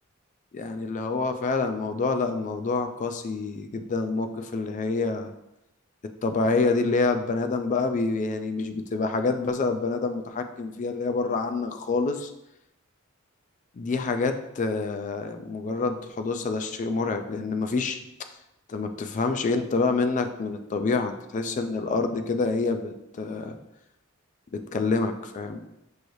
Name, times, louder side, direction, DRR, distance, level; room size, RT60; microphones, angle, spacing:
voice 1, 0.5-5.3 6.2-12.3 13.8-18.0 18.7-23.6 24.7-25.6, left 3 dB, 35° left, 7 dB, 0.3 m, -27 dB
6.3 x 3.1 x 2.6 m, 0.88 s
head